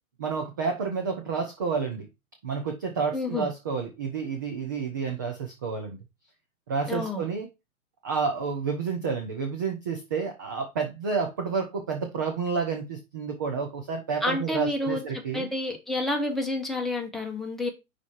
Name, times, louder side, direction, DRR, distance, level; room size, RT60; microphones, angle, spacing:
voice 1, 0.2-2.1 2.4-6.0 6.7-7.5 8.0-15.5, right 5 dB, 15° right, 0.3 m, -30 dB
voice 2, 3.1-3.5 6.9-7.2 14.2-15.0 15.3-17.7, left 2 dB, ahead, 1.1 m, -29 dB
5.5 x 4.2 x 4.5 m
hypercardioid pair, 130°, 41 cm